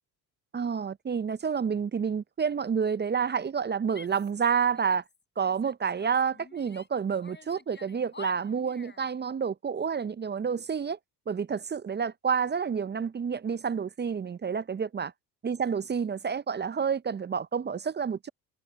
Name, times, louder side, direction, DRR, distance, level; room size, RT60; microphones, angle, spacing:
voice 1, 0.5-5.0 5.4-11.0 11.3-15.1 15.4-18.3, right 6 dB, 20° right, 0.6 m, -29 dB
Female speech woman speaking / Yell, 3.9-5.1 5.4-6.9 7.2-9.1, left 4 dB, 20° left, 6.1 m, -47 dB
hypercardioid pair, 65°, 48 cm